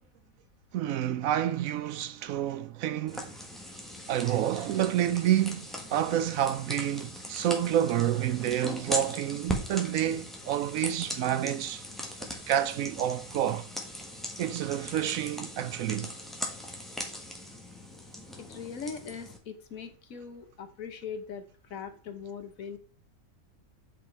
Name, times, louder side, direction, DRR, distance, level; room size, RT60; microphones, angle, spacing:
voice 1, 0.7-3.3 4.1-11.8 12.5-13.7 14.4-16.1, right 11 dB, 70° right, 0.9 m, -29 dB
sound 1, 3.1-19.4, left 1 dB, ahead, 1.3 m, -40 dB
voice 2, 18.4-21.4 21.7-22.8, left 6 dB, 65° left, 1.4 m, -40 dB
8.3 x 4.9 x 4.5 m
omnidirectional pair, 1.5 m